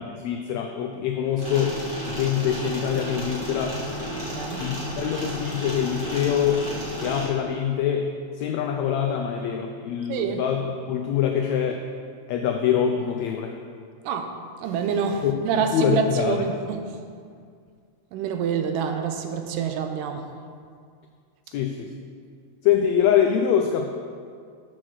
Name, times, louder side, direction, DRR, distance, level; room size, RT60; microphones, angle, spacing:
voice 1, 0.2-1.7 2.1-3.8 4.6-6.6 7.0-8.1 8.4-11.8 12.3-13.5 15.2-15.3 15.7-16.4 21.5-21.9 22.6-23.9, left 8 dB, 90° left, 3 dB, 1.5 m, -24 dB
sound 1, 1.4-7.3, equal, 20° right, 1.7 m, -33 dB
voice 2, 4.3-4.6 10.1-10.4 14.0-14.3 14.6-17.0 18.1-20.2, right 6 dB, 90° right, 6 dB, 2.3 m, -27 dB
7.5 x 6.2 x 6.3 m, 2.2 s
omnidirectional pair, 3.8 m